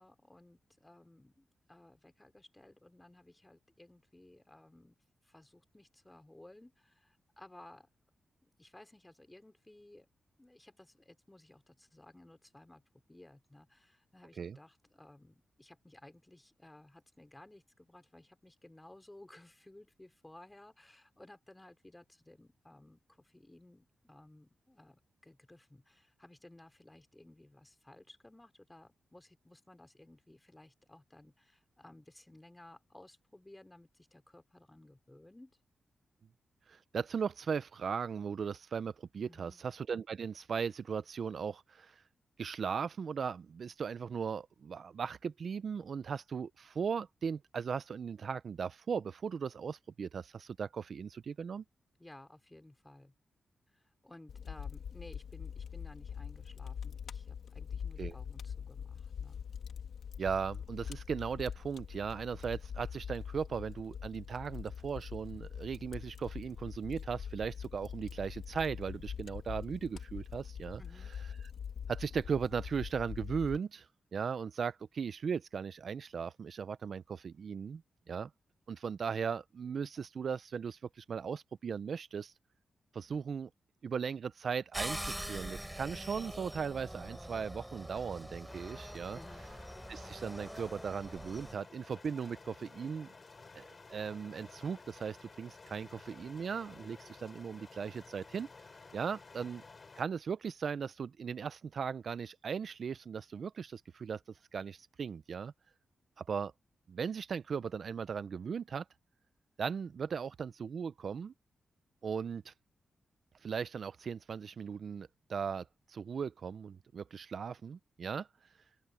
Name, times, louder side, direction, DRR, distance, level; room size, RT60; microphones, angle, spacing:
voice 1, 0.0-5.0 5.2-7.9 8.4-10.1 10.4-12.8 13.1-35.6 39.2-39.6 52.0-53.1 53.7-59.4 70.8-71.1 89.1-89.5, left 1 dB, 15° left, 4.2 m, -57 dB
voice 2, 36.7-42.0 42.4-51.6 58.0-58.2 60.2-70.8 71.9-73.9 74.1-77.8 78.1-78.3 78.7-82.3 82.9-83.5 83.8-89.2 89.9-93.1 93.5-98.5 98.9-99.6 100.0-104.2 104.5-105.5 106.2-106.5 106.9-108.8 109.6-111.3 112.0-112.5 113.4-118.3, right 6 dB, 65° right, 0.5 m, -38 dB
Fire, 54.3-73.6, left 7 dB, 80° left, 2.1 m, -44 dB
sound 1, 84.7-91.5, right 1 dB, 5° right, 4.4 m, -44 dB
sound 2, 88.5-100.0, left 4 dB, 40° left, 3.8 m, -54 dB
open air
cardioid pair, 75°, 0 cm